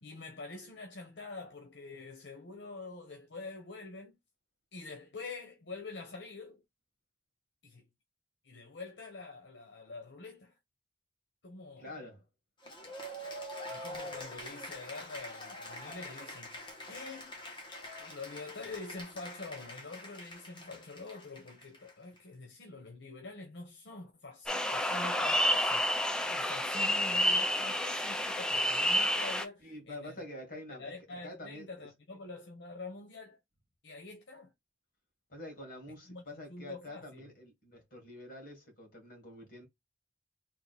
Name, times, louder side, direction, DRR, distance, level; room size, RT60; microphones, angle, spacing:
voice 1, 0.0-4.2 4.7-6.6 7.6-7.9 8.4-10.5 11.4-12.0 13.7-17.4 18.0-30.1 30.8-33.4 33.8-34.5 36.1-36.2 36.5-37.2, left 3 dB, 80° left, 0.9 m, -46 dB
voice 2, 11.8-12.2 29.6-30.9 31.2-31.7 35.3-39.7, left 1 dB, 55° left, 2.0 m, -47 dB
Cheering / Applause, 12.6-22.2, left 1 dB, 30° left, 1.3 m, -45 dB
sound 1, 24.5-29.4, left 1 dB, 5° left, 0.5 m, -29 dB
3.7 x 2.5 x 4.1 m
head